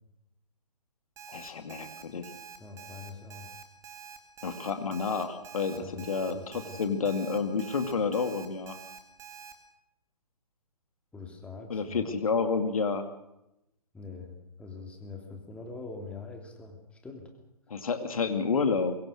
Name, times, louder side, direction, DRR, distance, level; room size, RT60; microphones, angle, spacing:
Alarm, 1.2-9.5, right 8 dB, 15° right, 2.0 m, -47 dB
voice 1, 1.3-2.3 4.4-8.8 11.7-13.0 17.7-19.0, left 5 dB, 60° left, 7 dB, 2.5 m, -30 dB
voice 2, 2.6-3.5 5.7-6.1 6.3-6.8 11.1-12.1 13.9-17.3, left 4 dB, 5° left, 2 dB, 3.0 m, -44 dB
23.5 x 23.0 x 6.5 m, 0.89 s
figure-of-eight pair, 135°, 20 cm